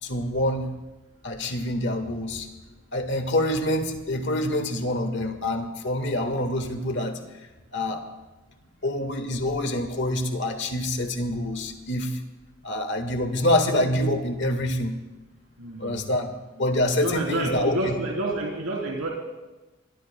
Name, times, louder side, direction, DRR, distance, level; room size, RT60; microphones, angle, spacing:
voice 1, 0.0-0.7 1.2-2.5 2.9-7.2 7.7-8.1 8.8-12.2 12.6-15.0 15.8-16.3 16.6-17.9, left 1 dB, 55° left, 6 dB, 1.6 m, -26 dB
voice 2, 15.6-16.1 16.9-19.1, right 2 dB, 90° right, -2 dB, 3.3 m, -29 dB
27.0 x 21.5 x 2.2 m, 1.1 s
head